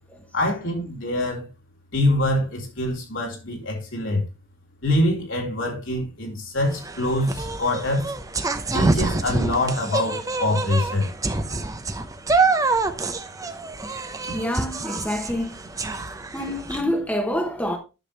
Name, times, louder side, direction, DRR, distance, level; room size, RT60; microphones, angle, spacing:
voice 1, 0.3-1.5 1.9-4.2 4.8-8.1 8.7-11.1, left 1 dB, 75° left, 3.6 m, -24 dB
sound 1, 6.7-16.8, right 3 dB, 15° right, 0.7 m, -26 dB
voice 2, 14.2-15.6 16.3-17.8, left 1 dB, 5° left, 1.1 m, -27 dB
10.0 x 7.0 x 3.3 m
head